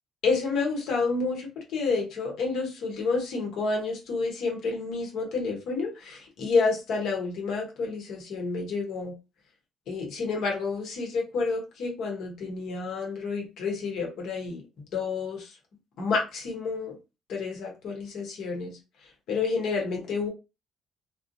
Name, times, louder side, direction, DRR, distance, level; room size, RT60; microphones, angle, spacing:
voice 1, 0.2-9.1 9.9-14.6 14.9-15.6 16.0-17.0 17.3-20.3, left 4 dB, 70° left, 0.9 m, -29 dB
2.4 x 2.1 x 2.6 m
supercardioid pair, 60°, 0 cm